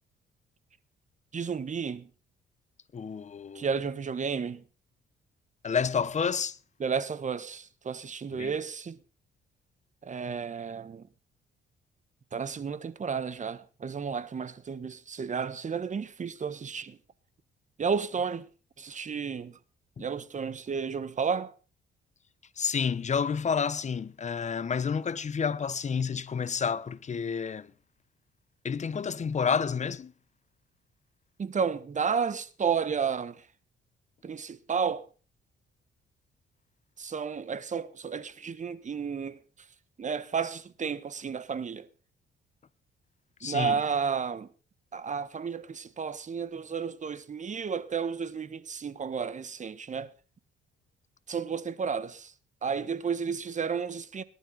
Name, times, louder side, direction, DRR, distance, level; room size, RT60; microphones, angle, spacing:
voice 1, 1.3-2.1 3.5-4.6 6.8-9.0 10.0-11.1 12.3-17.0 17.8-18.5 18.8-19.6 20.0-21.5 31.4-33.5 34.2-35.1 37.0-39.4 40.0-41.9 43.4-44.5 44.9-50.1 51.3-52.3 52.6-54.2, right 6 dB, 40° right, 1.4 m, -32 dB
voice 2, 2.9-3.7 5.6-6.6 8.3-8.5 20.0-20.1 22.6-27.7 28.6-30.1 43.4-43.8, left 6 dB, 35° left, 0.9 m, -30 dB
18.5 x 11.5 x 4.0 m
cardioid pair, 90°, 20 cm